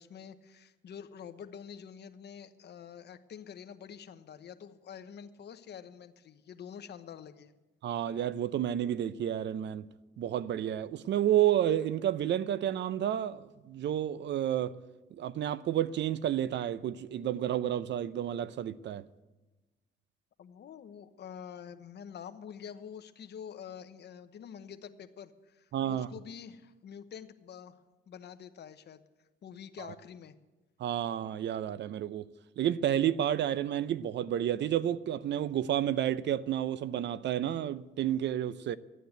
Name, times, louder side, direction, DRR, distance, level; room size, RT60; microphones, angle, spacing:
voice 1, 0.0-7.5 20.4-29.0 29.4-30.4, left 8 dB, 60° left, 1.0 m, -47 dB
voice 2, 7.8-9.9 10.2-14.8 15.1-19.0 25.7-26.1 29.8-29.9 30.8-32.3 32.6-38.8, right 11 dB, 65° right, 0.6 m, -30 dB
13.0 x 9.3 x 8.1 m
cardioid pair, 90°, 20 cm